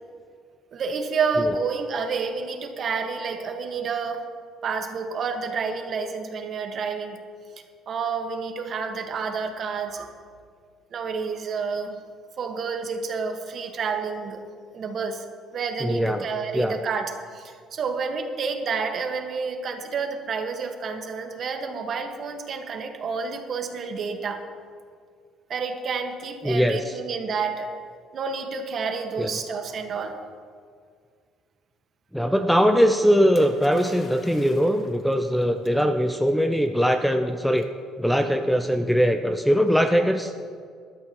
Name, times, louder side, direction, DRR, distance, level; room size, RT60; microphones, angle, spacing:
voice 1, 0.7-4.2 4.6-7.2 7.9-10.1 10.9-12.0 12.4-14.4 14.7-15.2 15.5-24.4 25.5-27.7 28.1-30.2 39.9-40.2, right 5 dB, 40° right, 4 dB, 1.4 m, -29 dB
voice 2, 15.8-16.3 16.5-16.8 26.4-27.0 29.2-29.4 32.1-37.7 38.0-40.3, equal, ahead, 7 dB, 0.5 m, -21 dB
Splash splatter, 33.3-35.1 36.1-36.2, left 3 dB, 35° left, 1.4 m, -46 dB
20.0 x 12.5 x 3.0 m, 2.1 s
cardioid pair, 140°, 0 cm